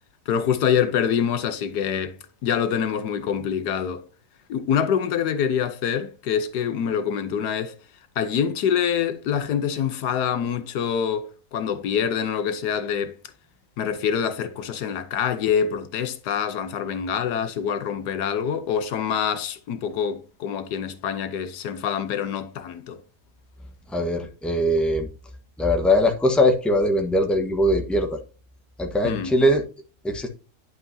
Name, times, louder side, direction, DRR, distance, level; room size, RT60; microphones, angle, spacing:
voice 1, 0.3-4.0 4.5-7.7 8.2-13.2 13.8-23.0 29.0-29.3, left 8 dB, 85° left, 1.4 m, -25 dB
voice 2, 23.9-25.1 25.6-28.2 28.8-29.7 30.0-30.3, left 1 dB, ahead, 1.1 m, -21 dB
10.5 x 5.7 x 2.7 m
omnidirectional pair, 1.7 m